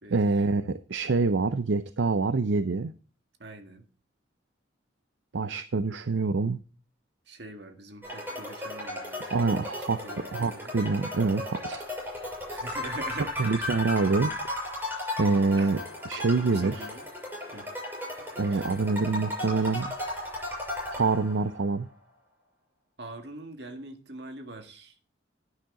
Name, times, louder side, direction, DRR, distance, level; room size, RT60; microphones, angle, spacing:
voice 1, 0.1-2.9 5.3-6.6 9.3-10.0 10.3-11.8 13.4-14.3 15.2-15.8 16.1-16.9 18.4-20.0 20.9-21.9, right 3 dB, 75° right, 0.5 m, -26 dB
voice 2, 3.4-3.9 7.3-9.7 10.0-10.8 12.5-13.3 15.6-15.8 16.3-17.0 17.5-17.7 18.5-18.7 23.0-24.9, right 2 dB, 60° right, 1.9 m, -43 dB
sound 1, 8.0-21.7, left 1 dB, 10° right, 6.8 m, -36 dB
10.5 x 10.0 x 3.7 m
head